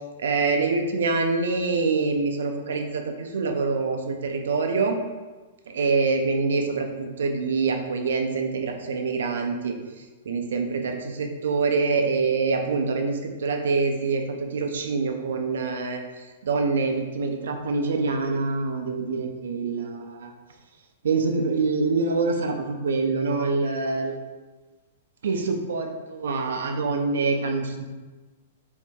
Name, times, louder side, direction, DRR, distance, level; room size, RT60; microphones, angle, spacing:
voice 1, 0.2-5.0 5.7-9.8 10.3-16.0 16.4-20.3 21.0-24.2 25.2-27.8, right 4 dB, 65° right, 4 dB, 0.4 m, -25 dB
2.6 x 2.2 x 3.5 m, 1.3 s
figure-of-eight pair, 105°, 0 cm